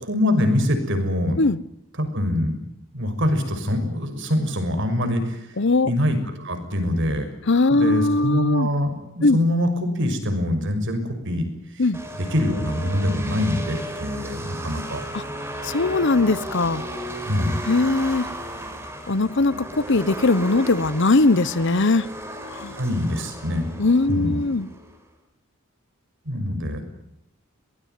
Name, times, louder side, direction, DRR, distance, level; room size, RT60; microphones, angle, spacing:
voice 1, 0.1-1.4 2.0-2.5 2.9-5.5 5.9-7.3 7.7-11.5 11.7-11.8 12.1-15.0 17.3-17.6 22.8-23.7 24.1-24.4 26.2-26.8, left 1 dB, 60° right, 7 dB, 6.2 m, -24 dB
voice 2, 5.6-5.9 7.5-8.7 9.2-9.4 11.8-12.0 15.1-15.2 15.6-16.9 17.7-18.3 19.1-22.1 22.5-22.7 23.8-24.7, left 3 dB, 60° left, 19 dB, 1.0 m, -20 dB
sound 1, 11.9-25.0, right 1 dB, 10° right, 5.2 m, -34 dB
23.5 x 20.0 x 9.5 m, 0.82 s
head